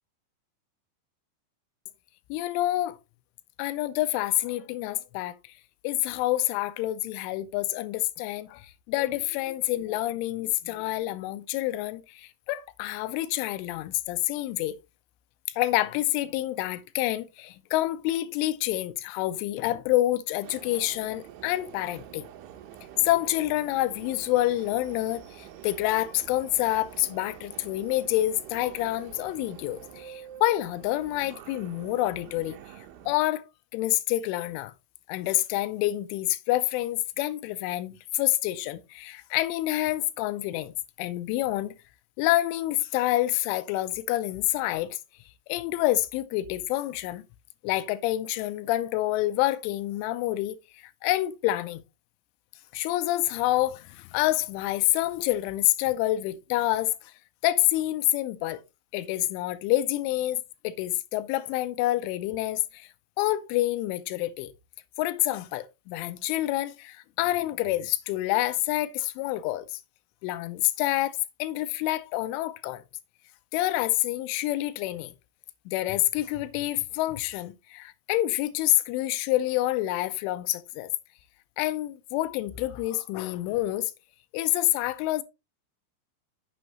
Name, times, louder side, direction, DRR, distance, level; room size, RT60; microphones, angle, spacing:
voice 1, 2.3-3.0 3.6-5.5 5.8-14.8 15.6-22.3 23.0-32.6 33.1-33.4 33.7-34.7 35.1-41.7 42.2-45.0 45.5-47.2 47.6-51.8 52.7-57.1 57.4-58.6 58.9-62.9 63.2-64.5 65.0-69.8 70.2-72.8 73.5-75.1 75.7-80.9 81.6-83.9 84.3-85.2, left 16 dB, 90° left, 3.1 m, -27 dB
Subway metro underground, 20.4-33.2, right 10 dB, 80° right, 3.2 m, -47 dB
9.1 x 7.1 x 2.9 m
omnidirectional pair, 5.6 m